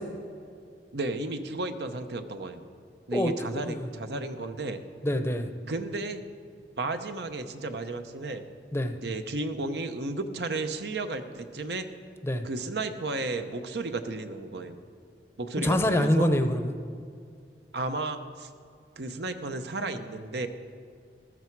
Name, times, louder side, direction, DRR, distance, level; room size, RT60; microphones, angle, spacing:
voice 1, 0.9-2.6 3.1-4.8 5.7-6.2 6.8-8.4 9.0-11.9 12.4-14.8 15.4-16.3 17.7-18.5 19.0-20.5, right 2 dB, 70° right, 8 dB, 0.8 m, -33 dB
voice 2, 3.1-3.7 5.0-5.5 8.7-8.9 12.2-12.5 15.6-16.7, left 1 dB, 15° left, 7 dB, 0.7 m, -25 dB
14.5 x 13.5 x 4.6 m, 2.4 s
head